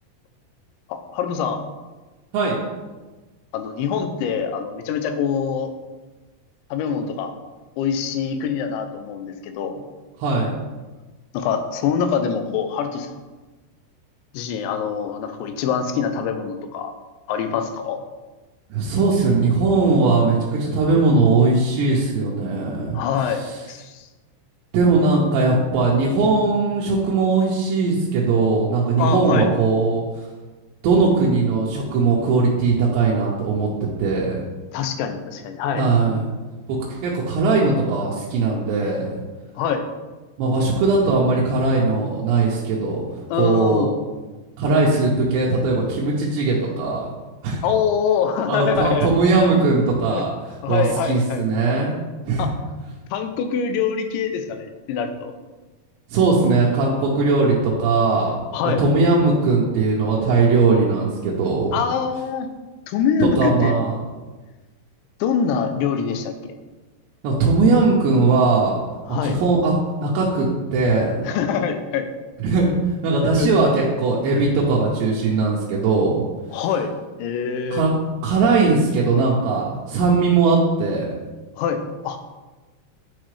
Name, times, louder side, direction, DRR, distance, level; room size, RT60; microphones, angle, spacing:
voice 1, 0.9-1.6 3.5-5.7 6.7-7.4 7.8-9.8 11.3-13.2 14.3-16.9 17.3-18.0 22.9-24.1 29.0-29.5 34.7-35.9 39.6-39.9 43.3-43.9 47.6-49.1 50.1-50.2 50.6-51.5 52.4-52.5 53.1-55.3 58.5-58.8 61.7-62.5 62.9-63.7 65.2-66.5 69.1-69.4 71.3-72.1 73.4-73.5 74.4-74.5 76.5-76.9 77.2-77.8 81.6-82.2, left 7 dB, 90° left, 7 dB, 2.9 m, -24 dB
voice 2, 10.2-10.5 18.7-23.6 24.7-30.3 30.8-34.4 35.7-36.3 36.7-39.2 40.4-43.1 43.3-43.9 44.6-47.1 47.4-47.6 48.5-50.3 50.7-52.0 52.2-52.5 56.1-58.4 58.8-61.8 63.4-64.1 67.2-68.8 69.2-69.7 70.0-71.3 72.4-76.2 76.5-76.6 77.7-77.9 78.2-81.1, right 3 dB, 80° right, -4 dB, 2.9 m, -19 dB
10.0 x 4.1 x 3.2 m, 1.2 s
omnidirectional pair, 5.2 m